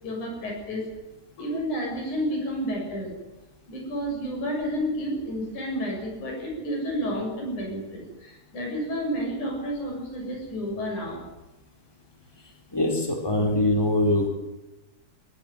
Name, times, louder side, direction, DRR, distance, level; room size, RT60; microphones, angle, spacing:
voice 1, 0.0-0.9 1.4-3.1 3.7-11.2, equal, 85° left, 1 dB, 8.7 m, -31 dB
voice 2, 12.7-14.3, left 1 dB, 5° left, 1 dB, 4.1 m, -23 dB
21.0 x 16.5 x 9.3 m, 1.0 s
omnidirectional pair, 3.4 m